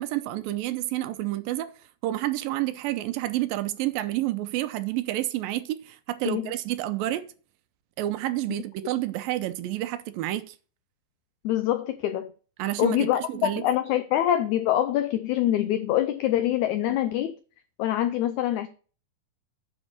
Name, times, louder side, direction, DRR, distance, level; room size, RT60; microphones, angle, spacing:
voice 1, 0.0-1.7 2.0-7.2 8.0-10.5 12.6-13.6, right 15 dB, 85° right, 2.4 m, -29 dB
voice 2, 11.4-12.3 12.8-17.3 17.8-18.7, left 12 dB, 85° left, 1.7 m, -25 dB
10.0 x 4.5 x 6.6 m
omnidirectional pair, 4.1 m